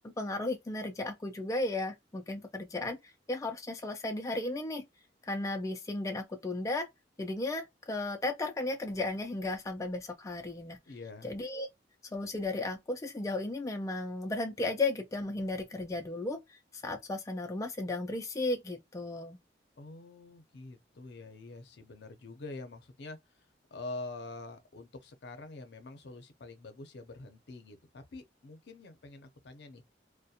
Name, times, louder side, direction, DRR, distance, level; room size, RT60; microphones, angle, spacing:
voice 1, 0.2-3.0 3.3-4.8 5.2-6.9 7.2-10.8 11.2-11.7 12.1-19.4, left 2 dB, 20° left, 0.3 m, -35 dB
voice 2, 10.9-11.3 19.8-29.8, left 2 dB, 65° left, 0.5 m, -46 dB
2.3 x 2.1 x 2.7 m
head